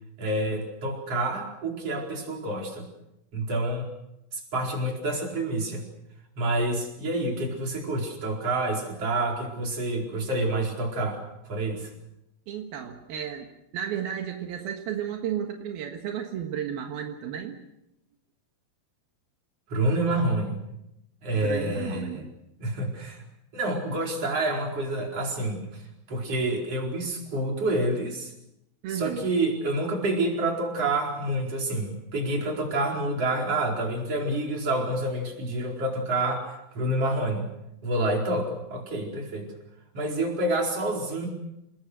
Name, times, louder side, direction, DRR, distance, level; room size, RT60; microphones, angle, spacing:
voice 1, 0.2-2.8 3.3-3.9 4.3-5.8 6.4-11.2 11.5-11.9 19.7-20.6 21.2-22.2 22.6-23.2 23.5-25.6 26.1-28.3 28.9-36.5 36.7-37.5 37.8-39.5 39.9-41.3, right 2 dB, 40° right, 0 dB, 5.4 m, -28 dB
voice 2, 12.5-13.5 13.7-17.6 21.3-22.3 28.8-29.3, right 9 dB, 80° right, 3 dB, 3.5 m, -33 dB
28.5 x 21.0 x 6.5 m, 0.86 s
omnidirectional pair, 4.3 m